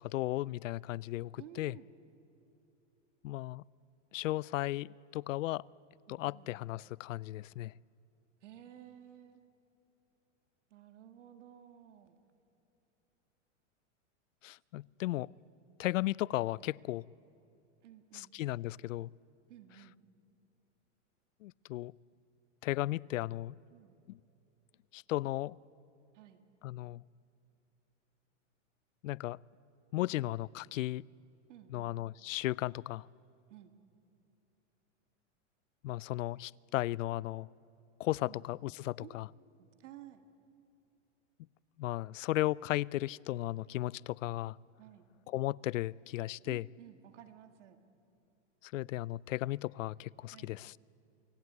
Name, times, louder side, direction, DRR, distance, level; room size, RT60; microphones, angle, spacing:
voice 1, 0.0-1.8 3.2-3.6 4.1-5.7 6.1-7.7 14.4-15.3 15.8-17.0 18.1-19.1 21.4-21.9 22.6-23.6 24.1-24.2 24.9-25.6 26.6-27.0 29.0-29.4 29.9-31.1 31.7-33.1 35.8-37.5 38.0-39.3 41.8-44.6 45.3-46.6 48.6-50.7, left 16 dB, 90° left, 0.5 m, -35 dB
voice 2, 1.4-1.9 6.1-6.5 8.4-9.4 10.7-12.2 17.8-18.3 19.5-20.0 23.7-24.0 26.1-26.4 30.0-30.2 31.5-31.9 33.5-33.7 38.3-38.5 39.0-40.2 44.8-45.1 46.4-47.8 50.3-50.5, right 11 dB, 70° right, 1.9 m, -54 dB
28.5 x 18.5 x 9.4 m
supercardioid pair, 155°, 37 cm